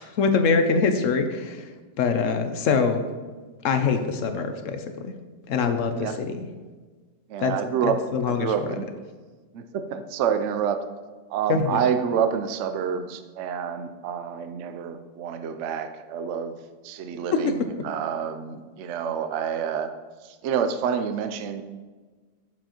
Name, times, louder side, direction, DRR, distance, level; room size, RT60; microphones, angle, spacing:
voice 1, 0.0-1.7 2.0-3.0 3.6-5.1 5.5-6.4 7.4-7.5 7.8-8.5 11.5-11.8 17.3-17.4, left 5 dB, 65° left, 7 dB, 0.8 m, -24 dB
voice 2, 7.3-8.0 8.3-8.9 9.5-10.8 11.3-19.9 20.2-21.6, right 7 dB, 80° right, 8 dB, 0.6 m, -28 dB
7.4 x 6.9 x 2.9 m, 1.4 s
omnidirectional pair, 1.8 m